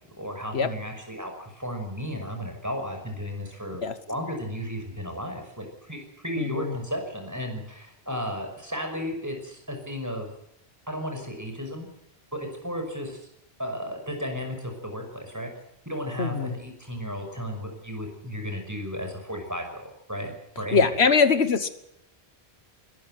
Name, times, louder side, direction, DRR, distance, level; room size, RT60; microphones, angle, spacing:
voice 1, 0.2-10.3 10.9-11.9 12.3-13.2 13.6-15.5 15.9-20.3 20.6-20.8, equal, 15° right, 3 dB, 6.0 m, -34 dB
voice 2, 6.4-6.7 16.2-16.5 20.7-21.7, left 5 dB, 75° left, 11 dB, 1.5 m, -22 dB
21.0 x 14.0 x 9.4 m, 0.78 s
omnidirectional pair, 1.1 m